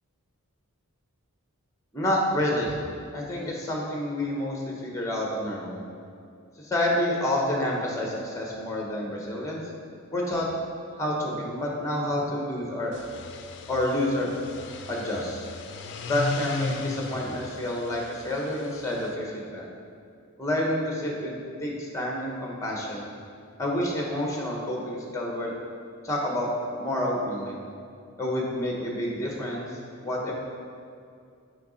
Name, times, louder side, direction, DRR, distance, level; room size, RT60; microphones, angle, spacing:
voice 1, 1.9-2.7 3.1-5.8 6.6-9.6 10.1-10.5 11.0-13.0 13.7-14.3 14.9-15.5 16.1-19.7 20.4-23.1 23.6-25.5 26.0-26.5 26.8-27.6 28.2-29.7 30.0-30.3, left 1 dB, 15° left, -1 dB, 0.9 m, -28 dB
sound 1, 12.8-19.1, left 3 dB, 50° left, 0.4 m, -36 dB
6.7 x 4.9 x 4.0 m, 2.4 s
head